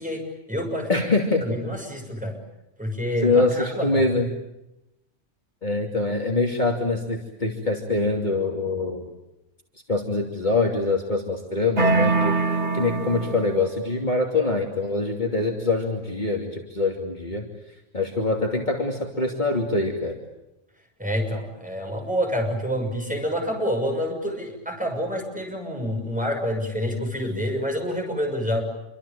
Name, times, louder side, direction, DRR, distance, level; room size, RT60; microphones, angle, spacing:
voice 1, 0.0-0.9 1.4-2.4 2.8-4.0 21.0-28.6, equal, 5° right, 2 dB, 6.4 m, -27 dB
voice 2, 0.9-1.4 3.2-4.3 5.6-9.0 9.9-12.3 12.7-17.4 17.9-20.2, left 3 dB, 40° left, 1 dB, 2.9 m, -24 dB
sound 1, 11.8-13.7, right 3 dB, 65° right, 2.7 m, -23 dB
28.0 x 24.5 x 8.7 m, 0.92 s
omnidirectional pair, 1.2 m